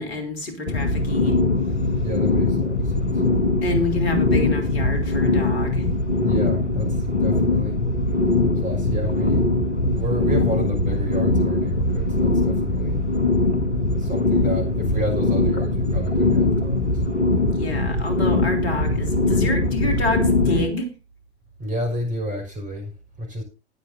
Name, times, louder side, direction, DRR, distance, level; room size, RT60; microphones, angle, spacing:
voice 1, 0.0-1.4 3.6-5.8 17.5-20.9, left 1 dB, 65° left, 3.5 m, -27 dB
sound 1, 0.7-20.7, left 2 dB, 90° left, 1.2 m, -21 dB
voice 2, 2.0-3.2 6.1-7.8 8.4-9.5 9.9-13.1 14.0-17.0 21.6-22.9 23.2-23.4, right 1 dB, 20° right, 5.9 m, -30 dB
20.5 x 7.7 x 2.7 m
figure-of-eight pair, 90°, 34 cm